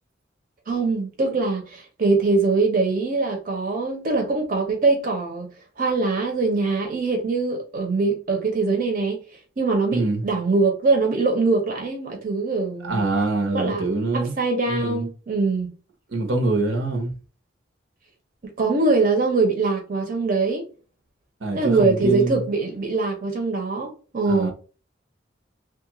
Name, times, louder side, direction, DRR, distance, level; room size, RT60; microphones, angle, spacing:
voice 1, 0.7-5.5 5.8-9.2 9.6-13.0 13.5-13.8 14.1-15.7 18.4-20.7 21.5-24.5, right 3 dB, 45° right, 0.8 m, -22 dB
voice 2, 9.9-10.2 12.8-14.3 14.7-15.1 16.1-17.1 21.4-22.4 24.3-24.5, right 2 dB, 75° right, 1.0 m, -24 dB
3.1 x 2.4 x 3.0 m
head